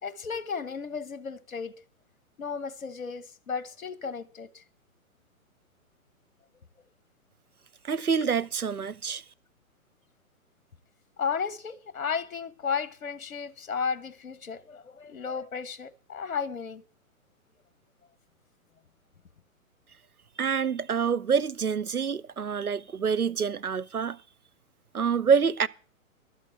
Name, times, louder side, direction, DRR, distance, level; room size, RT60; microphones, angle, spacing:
voice 1, 0.0-1.8 2.4-4.6 8.2-8.3 11.2-16.8, left 6 dB, 65° left, 1.1 m, -34 dB
voice 2, 7.8-9.2 20.4-24.2 24.9-25.7, right 6 dB, 90° right, 0.7 m, -26 dB
12.5 x 8.4 x 7.2 m
figure-of-eight pair, 120°, 43 cm